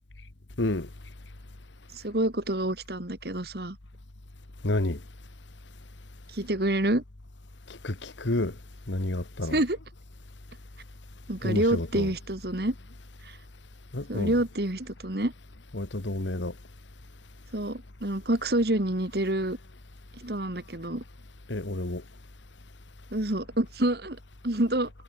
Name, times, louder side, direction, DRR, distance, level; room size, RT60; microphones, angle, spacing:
voice 1, 1.9-3.8 6.3-7.0 9.5-9.8 11.3-12.8 13.2-13.4 14.1-15.3 17.5-19.6 20.2-21.0 23.1-24.2 24.4-24.9, right 1 dB, 55° right, 2.2 m, -27 dB
voice 2, 4.6-5.0 7.8-8.5 8.9-9.6 11.4-12.1 13.9-14.3 15.7-16.5 21.5-22.0, left 2 dB, 85° left, 1.5 m, -29 dB
head